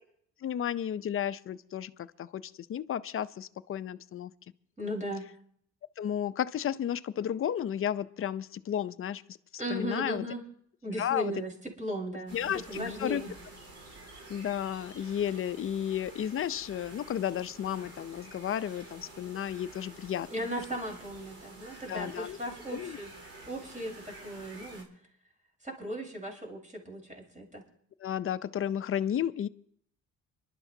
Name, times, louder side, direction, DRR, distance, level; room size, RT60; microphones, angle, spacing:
voice 1, 0.4-4.3 6.0-9.2 9.7-10.3 11.0-11.3 12.3-13.2 14.3-20.5 21.9-22.4 22.7-23.0 28.0-29.5, left 10 dB, 45° left, 13 dB, 0.6 m, -33 dB
voice 2, 4.8-5.3 9.6-10.4 10.8-11.5 11.8-12.4 12.7-13.3 20.3-23.1 23.5-24.9 25.6-27.6, equal, 25° right, 0 dB, 4.5 m, -37 dB
sound 1, 12.3-24.8, right 2 dB, 50° right, 3.5 m, -49 dB
25.5 x 12.0 x 2.8 m, 0.64 s
cardioid pair, 90°, 30 cm